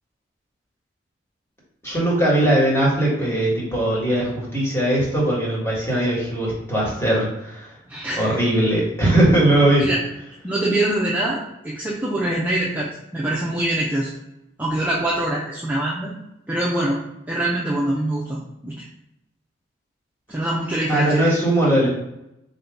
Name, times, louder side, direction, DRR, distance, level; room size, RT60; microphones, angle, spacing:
voice 1, 1.8-7.7 8.2-9.9 20.9-21.9, right 1 dB, 15° left, -6 dB, 1.5 m, -19 dB
voice 2, 7.9-8.4 9.8-10.0 10.4-14.1 14.6-16.1 16.5-17.0 17.3-18.8 20.3-21.3, right 1 dB, 10° right, -6 dB, 0.5 m, -24 dB
3.9 x 2.7 x 3.5 m, 0.84 s
head